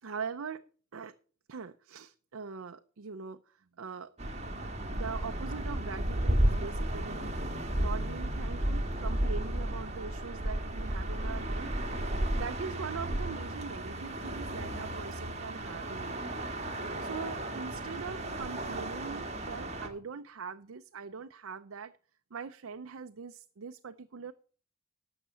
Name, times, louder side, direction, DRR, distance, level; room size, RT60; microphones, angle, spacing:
voice 1, 0.0-0.6 0.9-1.1 1.5-4.1 4.9-7.3 7.7-11.7 12.4-16.5 17.0-21.9 22.3-24.3, right 5 dB, 65° right, 8 dB, 0.5 m, -42 dB
sound 1, 4.2-19.9, right 1 dB, 30° right, 1.7 m, -33 dB
12.0 x 7.2 x 5.6 m, 0.41 s
head